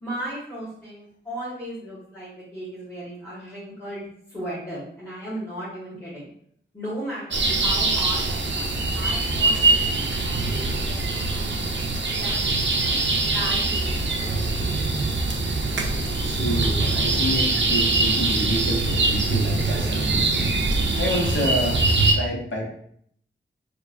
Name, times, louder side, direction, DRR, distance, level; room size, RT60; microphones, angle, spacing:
voice 1, 0.0-6.3 6.7-10.4 10.9-11.6 12.2-12.6 13.3-15.1, right 1 dB, 5° left, -10 dB, 1.5 m, -36 dB
sound 1, 7.3-22.1, right 3 dB, 65° right, 0.5 m, -23 dB
voice 2, 16.2-20.4 20.9-21.8 22.1-22.7, equal, 75° left, -1 dB, 0.9 m, -28 dB
4.5 x 2.4 x 2.5 m, 0.65 s
wide cardioid pair, 75°, 20 cm